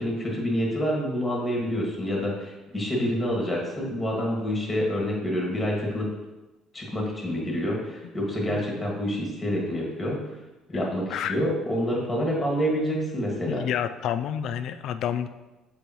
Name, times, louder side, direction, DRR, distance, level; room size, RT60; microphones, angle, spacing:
voice 1, 0.0-6.1 6.7-10.2 10.7-13.6, equal, 10° left, -2 dB, 2.0 m, -27 dB
voice 2, 10.7-11.3 13.5-15.3, left 9 dB, 65° left, 10 dB, 0.4 m, -30 dB
6.9 x 4.8 x 3.1 m, 1.1 s
cardioid pair, 115°, 0 cm